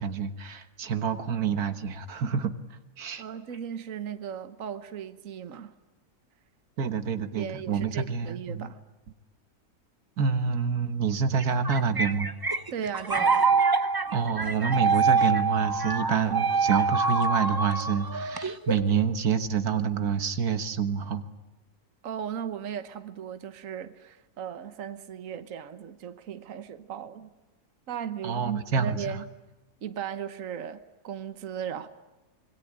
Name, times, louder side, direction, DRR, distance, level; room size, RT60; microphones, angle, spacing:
voice 1, 0.0-2.5 3.0-3.2 6.8-8.7 10.2-12.3 14.1-21.3 28.2-29.2, right 6 dB, 90° right, 1.9 m, -27 dB
voice 2, 3.2-5.7 7.3-8.8 12.7-13.4 22.0-27.3 27.9-29.3 29.8-31.9, right 8 dB, 65° right, 1.5 m, -37 dB
sound 1, 11.4-18.9, right 4 dB, 20° right, 0.8 m, -25 dB
26.0 x 22.5 x 10.0 m
omnidirectional pair, 1.6 m